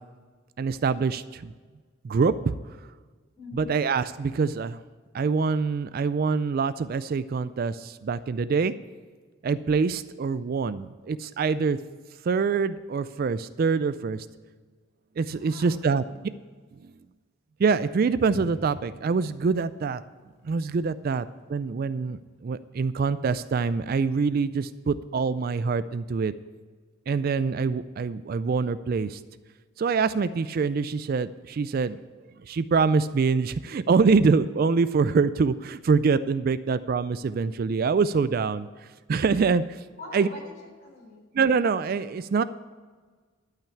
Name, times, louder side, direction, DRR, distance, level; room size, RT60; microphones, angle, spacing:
voice 1, 0.6-1.5 2.0-2.5 3.5-4.8 5.1-8.7 9.4-11.8 12.2-14.3 15.2-16.0 16.8-16.9 17.6-20.0 20.4-26.3 27.1-29.2 29.8-32.0 32.5-38.7 39.1-39.8 40.1-40.3 41.3-42.4, right 5 dB, 45° right, 15 dB, 0.3 m, -25 dB
voice 2, 3.4-3.7 15.3-16.2 40.0-41.2, left 2 dB, 40° left, -2 dB, 4.3 m, -44 dB
Drum, 18.3-20.7, equal, 55° left, 0.9 m, -46 dB
12.0 x 5.8 x 8.5 m, 1.5 s
head